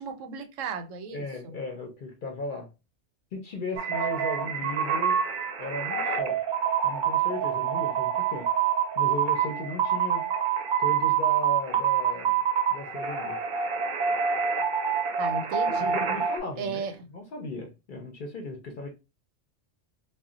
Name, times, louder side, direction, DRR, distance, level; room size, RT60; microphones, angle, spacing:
voice 1, 0.0-1.6 15.2-16.0 16.6-17.1, right 5 dB, 90° right, 0.9 m, -35 dB
voice 2, 1.1-2.7 3.3-5.2 5.6-6.4 6.8-8.5 9.0-10.2 10.8-12.4 12.7-13.4 15.7-16.8 17.1-18.9, left 2 dB, 55° left, 0.6 m, -36 dB
sound 1, 3.8-16.4, right 8 dB, 55° right, 0.6 m, -26 dB
2.2 x 2.1 x 3.7 m
omnidirectional pair, 1.3 m